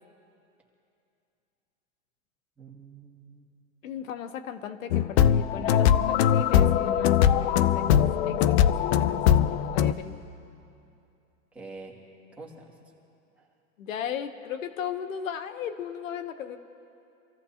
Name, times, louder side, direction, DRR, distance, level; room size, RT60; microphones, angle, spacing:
voice 1, 2.6-3.6 11.5-11.9 12.4-12.8 13.4-13.5, right 3 dB, 5° right, -4 dB, 2.4 m, -46 dB
voice 2, 3.8-7.9 8.3-9.4 9.6-10.2 13.8-16.6, left 8 dB, 90° left, 10 dB, 1.0 m, -36 dB
sound 1, 4.9-9.9, left 9 dB, 55° left, 0.6 m, -21 dB
26.5 x 15.0 x 2.9 m, 2.7 s
supercardioid pair, 140°, 38 cm